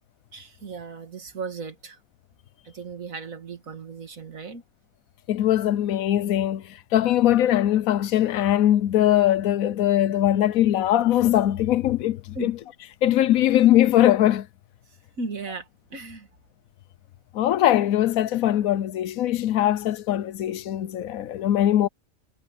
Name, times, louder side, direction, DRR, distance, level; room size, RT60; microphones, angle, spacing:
voice 1, 0.3-2.0 2.6-4.6 12.3-12.5 14.9-16.3, right 4 dB, 75° right, 2.5 m, -36 dB
voice 2, 5.3-6.6 6.9-12.5 13.0-14.5 17.3-21.9, left 12 dB, 85° left, 1.1 m, -21 dB
omnidirectional pair, 1.4 m